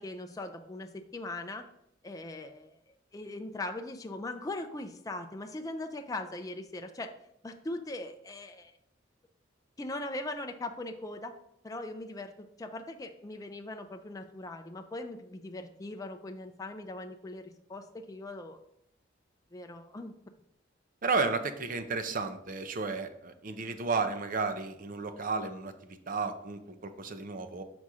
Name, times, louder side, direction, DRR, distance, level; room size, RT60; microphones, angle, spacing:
voice 1, 0.0-1.7 2.0-2.8 3.1-7.1 7.4-8.7 9.8-11.3 11.6-12.3 12.6-18.6 19.5-20.1, left 2 dB, 20° left, 5 dB, 0.4 m, -40 dB
voice 2, 21.0-27.6, right 4 dB, 45° right, 9 dB, 0.6 m, -33 dB
6.1 x 4.1 x 4.8 m, 0.75 s
head